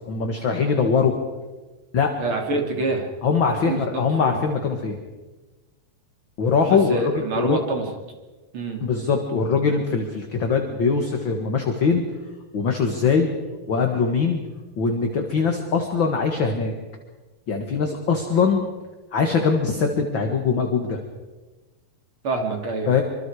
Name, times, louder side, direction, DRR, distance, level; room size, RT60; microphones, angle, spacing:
voice 1, 0.1-1.1 1.9-2.1 3.2-5.0 6.4-7.6 8.8-12.0 12.5-13.3 13.7-14.4 14.8-16.7 17.5-18.7 19.1-21.0 22.9-23.0, left 5 dB, 45° left, 3 dB, 1.9 m, -22 dB
voice 2, 2.2-3.1 3.6-4.4 6.7-7.8 8.5-8.8 22.2-22.9, right 3 dB, 40° right, 2 dB, 3.4 m, -26 dB
26.0 x 25.5 x 4.9 m, 1.2 s
omnidirectional pair, 4.1 m